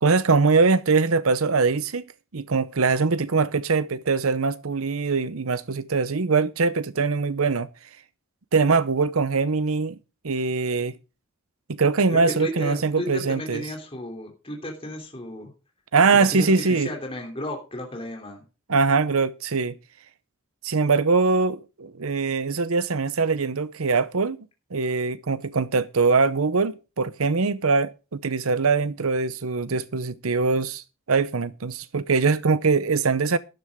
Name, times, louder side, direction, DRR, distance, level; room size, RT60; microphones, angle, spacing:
voice 1, 0.0-2.1 2.3-7.7 8.5-10.0 10.2-10.9 11.7-13.6 15.9-16.9 18.7-19.7 20.6-24.4 24.7-33.4, right 4 dB, 80° right, 0.8 m, -22 dB
voice 2, 12.1-15.5 16.1-18.4, left 1 dB, 25° left, 3.1 m, -34 dB
12.5 x 11.0 x 3.6 m
head